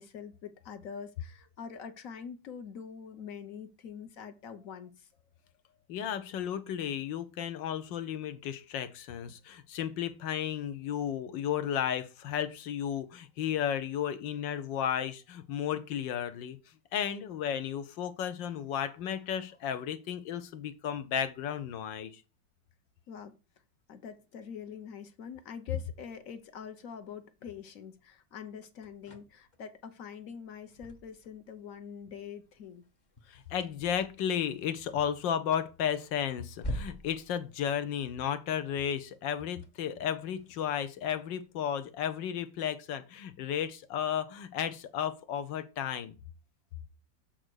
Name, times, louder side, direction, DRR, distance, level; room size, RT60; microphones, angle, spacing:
voice 1, 0.0-5.1 23.1-23.4 23.9-32.8, left 7 dB, 55° left, 1.0 m, -45 dB
voice 2, 5.9-16.6 16.9-22.2 33.3-46.1, left 9 dB, 80° left, 1.5 m, -33 dB
sound 1, 26.0-42.4, equal, 35° left, 0.8 m, -48 dB
7.7 x 3.9 x 6.3 m
omnidirectional pair, 2.0 m